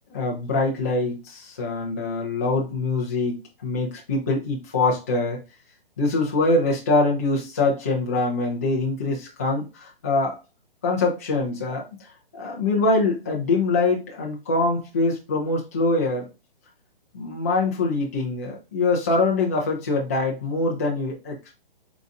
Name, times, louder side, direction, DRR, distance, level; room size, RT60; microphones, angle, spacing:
voice 1, 0.1-5.4 6.0-10.4 10.8-16.3 17.1-21.6, left 3 dB, 15° left, -2 dB, 0.4 m, -24 dB
3.9 x 2.3 x 3.7 m, 0.27 s
hypercardioid pair, 165°, 29 cm